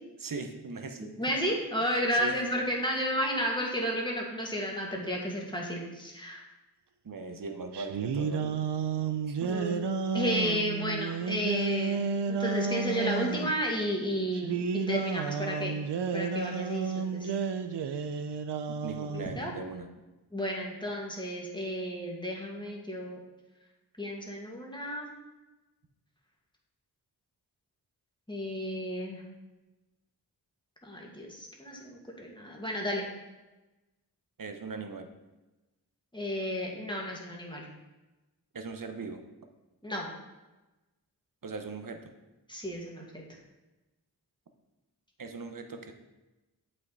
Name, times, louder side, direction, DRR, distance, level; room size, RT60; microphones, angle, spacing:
voice 1, 0.2-1.1 2.1-2.4 7.0-8.5 9.2-9.6 18.7-19.9 34.4-35.1 38.5-39.2 41.4-42.1 45.2-45.9, right 4 dB, 55° right, 6 dB, 1.0 m, -39 dB
voice 2, 1.0-6.4 9.5-9.9 10.1-17.3 19.1-19.5 20.3-23.2 24.0-25.1 28.3-29.2 30.8-33.1 36.1-37.7 39.8-40.1 42.5-43.2, equal, 10° left, -2 dB, 1.9 m, -32 dB
sound 1, 7.7-13.5 14.3-19.4, right 5 dB, 85° right, 0.6 m, -32 dB
8.0 x 5.5 x 4.0 m, 1.1 s
cardioid pair, 45°, 40 cm